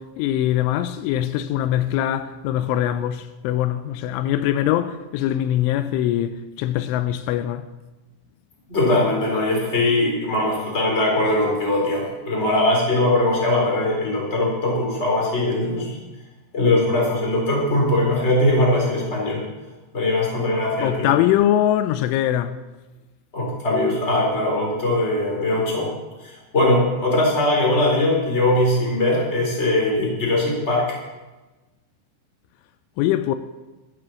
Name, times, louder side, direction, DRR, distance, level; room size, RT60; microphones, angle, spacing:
voice 1, 0.0-7.7 20.8-22.6 33.0-33.4, left 12 dB, 85° left, 3.1 m, -22 dB
voice 2, 8.7-16.0 16.5-19.4 19.9-21.1 23.3-25.9 26.2-30.9, left 1 dB, 15° left, 3.3 m, -21 dB
12.5 x 8.6 x 7.0 m
omnidirectional pair, 5.5 m